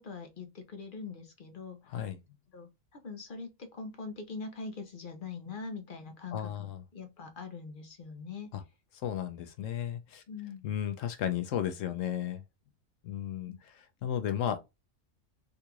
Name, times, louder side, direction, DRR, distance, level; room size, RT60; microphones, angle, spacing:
voice 1, 0.0-2.0 2.5-8.5 10.3-10.6 13.5-13.6, left 4 dB, 50° left, 0.7 m, -43 dB
voice 2, 1.9-2.2 6.3-6.8 8.5-8.6 9.0-10.2 10.6-12.4 13.0-14.6, left 10 dB, 75° left, 0.9 m, -34 dB
3.8 x 2.4 x 2.8 m
omnidirectional pair, 1.4 m